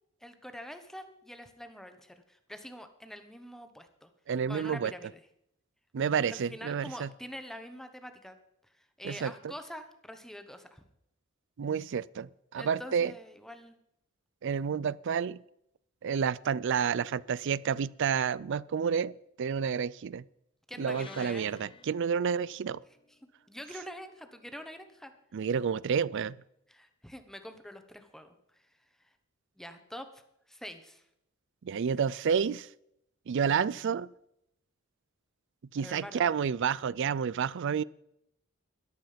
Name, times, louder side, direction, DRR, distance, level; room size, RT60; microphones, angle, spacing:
voice 1, 0.2-4.1 4.5-5.2 6.3-8.4 9.0-10.8 12.5-13.8 20.7-21.5 23.5-25.1 26.7-28.3 29.6-30.2 30.5-31.0 35.8-36.3, equal, ahead, 1.1 m, -45 dB
voice 2, 4.3-4.9 5.9-7.1 9.0-9.3 11.6-13.1 14.4-15.4 16.0-19.1 19.4-20.2 20.8-22.8 25.3-26.4 31.6-32.7 33.3-34.1 35.7-37.8, right 7 dB, 60° right, 0.4 m, -30 dB
sound 1, 20.9-24.4, left 4 dB, 25° left, 0.7 m, -53 dB
13.5 x 11.5 x 5.1 m
head